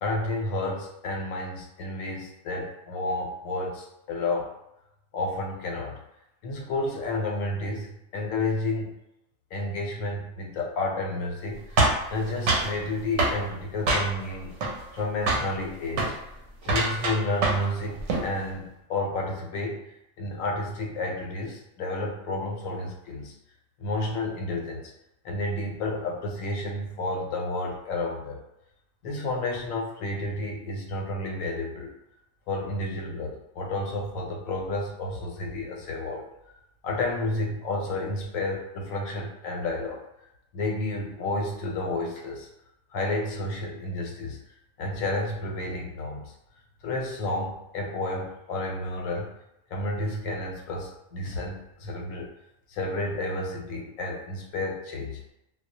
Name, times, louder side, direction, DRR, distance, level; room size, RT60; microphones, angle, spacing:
voice 1, 0.0-4.5 5.1-6.0 6.4-8.9 9.5-16.2 16.6-23.3 23.8-24.9 25.2-28.4 29.0-31.9 32.5-36.2 36.8-40.0 40.5-42.5 42.9-44.4 44.8-46.3 46.8-49.3 49.7-52.3 52.7-55.2, left 2 dB, 80° left, 0 dB, 1.0 m, -31 dB
sound 1, 11.8-12.7 13.2-13.4 13.9-14.3 14.6-15.0 15.3-15.5 15.9-16.2 16.6-17.7 18.0-18.3, right 2 dB, 70° right, 0.9 m, -24 dB
2.3 x 2.0 x 2.7 m, 0.87 s
omnidirectional pair, 1.4 m